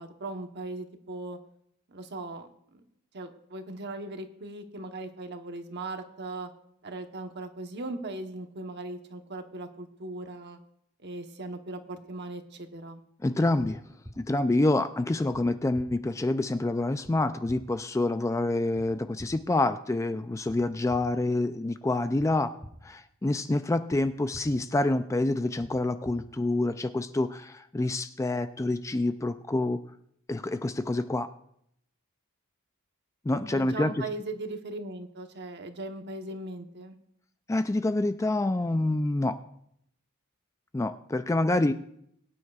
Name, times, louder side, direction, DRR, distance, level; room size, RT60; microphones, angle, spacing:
voice 1, 0.0-1.4 1.9-2.8 3.1-6.5 6.8-10.6 11.0-13.0 33.4-36.9, right 2 dB, 55° right, 6 dB, 1.1 m, -38 dB
voice 2, 13.2-13.8 14.2-22.5 22.8-29.8 30.3-31.3 33.3-33.9 37.5-39.4 40.7-41.7, left 2 dB, 15° left, 10 dB, 0.3 m, -27 dB
sound 1, 14.0-14.1 15.3-15.4 15.7-15.8 17.0-17.1 17.5-17.6 18.7-18.8 19.2-19.3 20.5-20.6 20.9-21.0 22.2-22.3 22.6-22.7 23.9-24.0 24.3-24.4 25.6-25.7 26.0-26.1, equal, 10° right, 1.5 m, -44 dB
22.0 x 9.2 x 2.4 m, 0.72 s
head